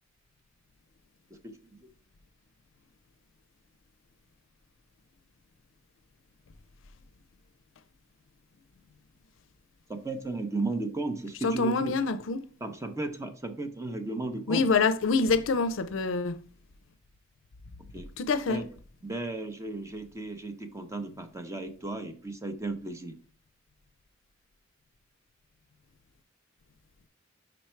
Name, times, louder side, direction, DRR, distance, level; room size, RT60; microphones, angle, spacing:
voice 1, 1.4-1.8 9.9-11.9 12.6-14.7 17.9-18.1 18.5-18.7 19.0-23.2, right 2 dB, 15° right, 0.7 m, -35 dB
voice 2, 11.4-12.5 14.5-16.4 18.2-18.6, left 4 dB, 70° left, 0.5 m, -26 dB
5.2 x 4.5 x 4.4 m
head